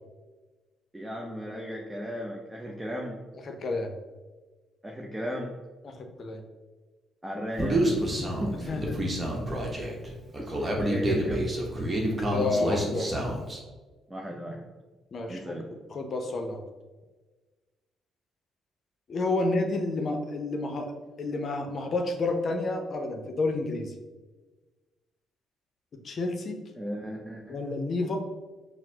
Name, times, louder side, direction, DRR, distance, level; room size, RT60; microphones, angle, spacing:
voice 1, 0.9-3.2 4.8-5.5 7.2-8.7 10.4-11.5 14.1-14.6 15.3-15.7 26.8-27.8 28.0-28.1, equal, 10° right, -1 dB, 0.6 m, -36 dB
voice 2, 3.5-3.9 5.8-6.4 8.6-9.0 12.3-13.1 15.1-15.6 15.9-16.6 19.1-20.9 21.2-23.9 25.9-26.6 27.5-28.2, left 2 dB, 50° left, 5 dB, 0.6 m, -30 dB
Human voice, 7.6-13.6, right 1 dB, 30° right, 1.0 m, -28 dB
5.7 x 2.0 x 2.8 m, 1.3 s
hypercardioid pair, 50°, 0 cm